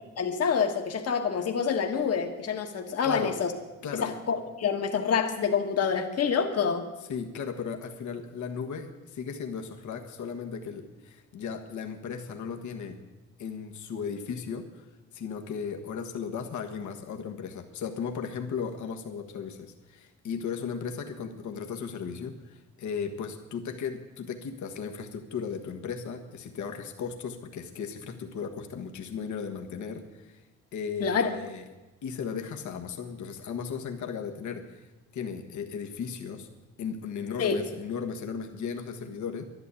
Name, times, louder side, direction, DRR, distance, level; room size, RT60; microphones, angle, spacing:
voice 1, 0.2-3.5 3.9-6.9 31.0-31.4 37.4-37.6, left 6 dB, 55° left, 4 dB, 1.6 m, -27 dB
voice 2, 3.0-3.4 3.8-4.1 7.1-13.0 13.4-14.9 15.1-30.4 30.7-31.6 32.0-34.8 35.1-36.5 36.8-39.4, left 6 dB, 70° left, 4 dB, 1.5 m, -36 dB
11.5 x 11.0 x 8.3 m, 1.1 s
cardioid pair, 90°, 30 cm